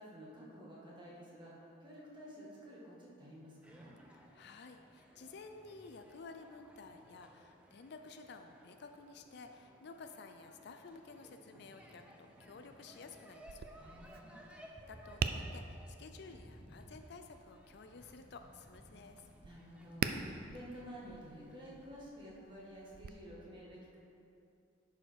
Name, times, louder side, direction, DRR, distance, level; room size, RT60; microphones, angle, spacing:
voice 1, 0.0-3.9 13.8-14.4 19.4-24.0, equal, 25° right, -6 dB, 1.8 m, -52 dB
sound 1, 3.6-21.9, equal, 5° right, 0.6 m, -59 dB
voice 2, 4.1-12.0 12.4-13.6 14.5-19.3, left 4 dB, 60° left, 6 dB, 0.4 m, -53 dB
Thunderstorm / Rain, 10.8-23.0, equal, 15° left, 2.1 m, -67 dB
Tap, 13.4-23.1, right 5 dB, 50° right, 0.3 m, -44 dB
10.5 x 4.9 x 4.6 m, 2.6 s
head